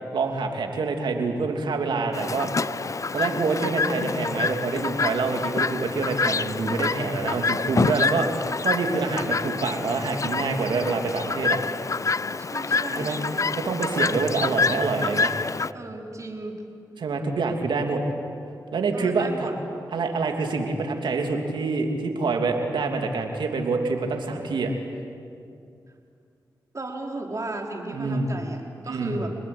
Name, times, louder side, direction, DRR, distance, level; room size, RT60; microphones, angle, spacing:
voice 1, 0.1-2.5 3.1-11.6 13.0-13.2 13.6-15.3 17.0-18.0 18.7-19.5 19.9-24.7 27.9-28.3 28.9-29.2, right 4 dB, 80° right, 3 dB, 3.0 m, -26 dB
Chirp tweet, 2.1-15.7, left 4 dB, 45° left, 0.6 m, -27 dB
voice 2, 12.4-13.5 15.7-16.6 18.9-19.6 26.7-29.3, right 2 dB, 40° right, 1 dB, 4.9 m, -35 dB
27.5 x 20.5 x 8.7 m, 2.4 s
cardioid pair, 45°, 8 cm